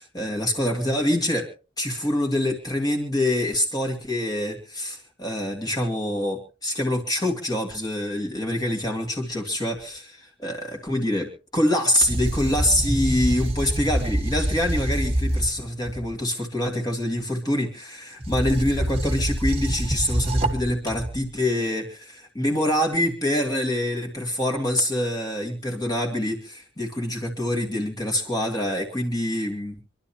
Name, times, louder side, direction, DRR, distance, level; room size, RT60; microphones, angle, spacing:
voice 1, 0.0-1.5 1.8-29.7, left 1 dB, 20° left, 0 dB, 2.6 m, -25 dB
sound 1, 12.0-16.2 18.2-21.2, right 1 dB, 30° right, 1.5 m, -26 dB
26.5 x 11.5 x 2.9 m, 0.35 s
head